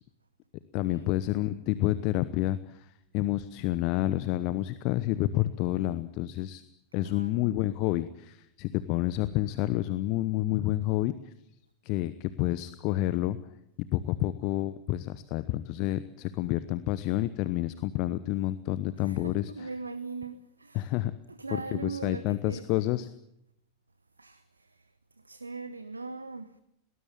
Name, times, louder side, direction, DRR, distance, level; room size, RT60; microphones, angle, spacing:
voice 1, 0.7-2.9 3.1-6.6 6.9-11.3 11.8-13.4 13.8-19.7 20.7-21.1 21.5-23.1, left 15 dB, 45° left, 1.0 m, -29 dB
voice 2, 7.0-7.6 19.0-20.9 21.3-22.8 24.2-24.9 25.2-26.5, right 3 dB, 80° right, 1.0 m, -40 dB
22.5 x 19.5 x 8.8 m
figure-of-eight pair, 90°, 0 cm